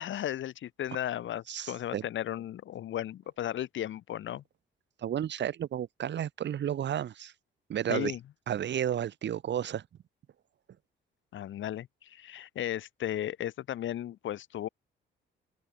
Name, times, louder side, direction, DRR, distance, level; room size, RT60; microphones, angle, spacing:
voice 1, 0.0-4.4 7.9-8.2 11.3-14.7, left 11 dB, 75° left, 6.4 m, -35 dB
voice 2, 1.5-2.0 5.0-7.3 7.7-8.1 8.5-9.8, right 10 dB, 65° right, 3.4 m, -32 dB
open air
cardioid pair, 90°, 20 cm